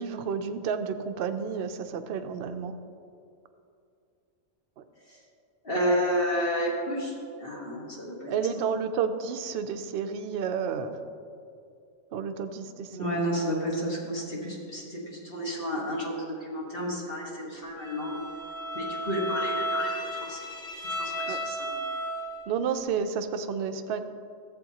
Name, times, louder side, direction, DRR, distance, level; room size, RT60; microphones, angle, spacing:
voice 1, 0.0-2.8 4.8-4.9 8.3-11.0 12.1-13.2 21.3-21.4 22.5-24.0, right 6 dB, 60° right, 8 dB, 0.7 m, -31 dB
voice 2, 5.6-8.3 12.9-18.2 18.7-19.9 20.3-20.4 21.0-21.7, equal, 45° left, -4 dB, 1.7 m, -31 dB
Bowed string instrument, 17.8-22.5, equal, 25° left, 1.8 m, -33 dB
13.5 x 7.6 x 2.9 m, 2.5 s
omnidirectional pair, 1.3 m